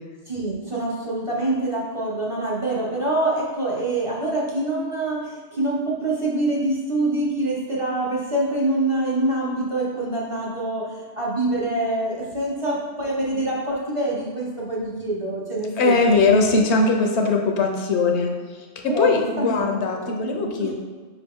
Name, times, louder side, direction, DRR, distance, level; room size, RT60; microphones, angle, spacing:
voice 1, 0.3-16.0 18.8-19.7 20.1-20.7, right 2 dB, 35° right, -5 dB, 0.6 m, -25 dB
voice 2, 15.8-18.3 18.8-20.7, left 3 dB, 80° left, 2 dB, 0.9 m, -20 dB
4.6 x 3.0 x 3.5 m, 1.5 s
omnidirectional pair, 1.1 m